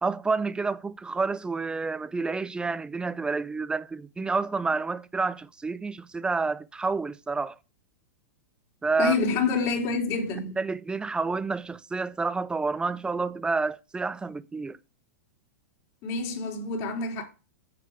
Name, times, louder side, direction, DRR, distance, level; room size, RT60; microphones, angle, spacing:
voice 1, 0.0-7.6 8.8-9.2 10.6-14.8, right 4 dB, 10° right, 0.6 m, -29 dB
voice 2, 9.0-10.6 16.0-17.2, left 4 dB, 45° left, 4.1 m, -27 dB
8.6 x 7.8 x 5.0 m
hypercardioid pair, 110°, 9 cm